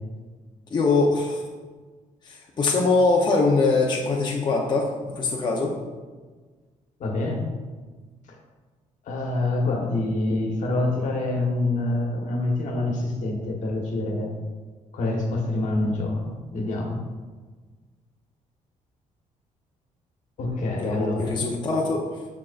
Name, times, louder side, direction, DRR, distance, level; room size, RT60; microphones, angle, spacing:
voice 1, 0.7-1.4 2.2-5.8 20.8-22.0, left 3 dB, 35° left, -2 dB, 0.7 m, -22 dB
voice 2, 7.0-7.5 9.0-14.3 14.9-17.0 20.4-21.4, left 2 dB, 65° left, 0 dB, 1.2 m, -26 dB
6.5 x 6.0 x 2.5 m, 1.4 s
cardioid pair, 120°, 14 cm